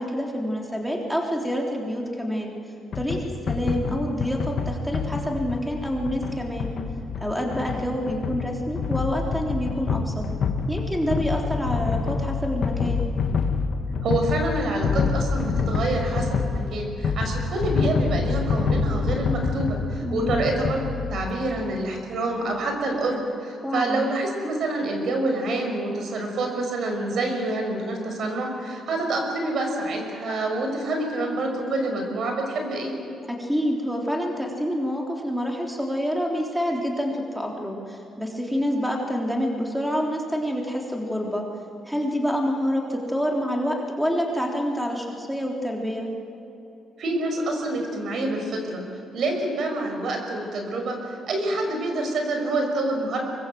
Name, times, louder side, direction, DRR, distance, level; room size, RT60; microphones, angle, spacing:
voice 1, 0.0-2.5 3.0-6.7 7.2-10.2 10.7-13.0 20.0-20.5 23.6-24.1 33.3-41.5 41.9-46.1, equal, ahead, 0 dB, 3.5 m, -27 dB
sound 1, 2.9-21.3, left 5 dB, 55° left, 2.2 m, -27 dB
voice 2, 14.0-20.8 21.1-32.9 47.0-48.8 49.1-51.0 51.3-53.2, right 2 dB, 65° right, 3 dB, 5.6 m, -27 dB
24.5 x 21.5 x 7.8 m, 3.0 s
cardioid pair, 90°, 0 cm